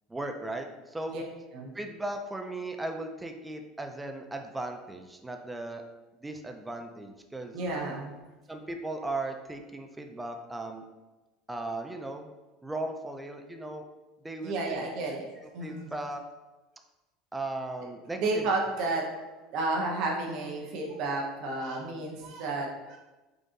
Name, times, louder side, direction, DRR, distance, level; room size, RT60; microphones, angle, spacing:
voice 1, 0.1-1.2 1.7-5.8 6.2-7.6 8.5-10.8 11.5-12.3 12.6-13.8 14.2-14.5 15.4-16.2 17.3-18.5, right 2 dB, 10° right, 4 dB, 0.4 m, -37 dB
voice 2, 7.5-8.2 14.4-15.3 15.5-15.9 18.2-19.2 19.5-23.0, right 2 dB, 60° right, -1 dB, 0.7 m, -31 dB
3.8 x 2.5 x 2.5 m, 1.1 s
hypercardioid pair, 85°, 0 cm